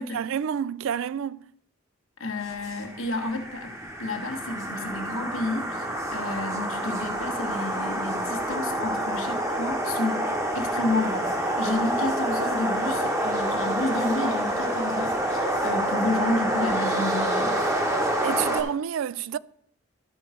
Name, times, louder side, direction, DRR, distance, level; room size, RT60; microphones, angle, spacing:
voice 1, 0.0-1.5 18.2-19.4, right 8 dB, 70° right, 0.3 m, -29 dB
voice 2, 2.2-10.2 10.5-17.6, left 2 dB, 75° left, 1.4 m, -30 dB
sound 1, 2.5-18.6, right 1 dB, 15° right, 1.1 m, -27 dB
12.5 x 4.6 x 5.0 m
head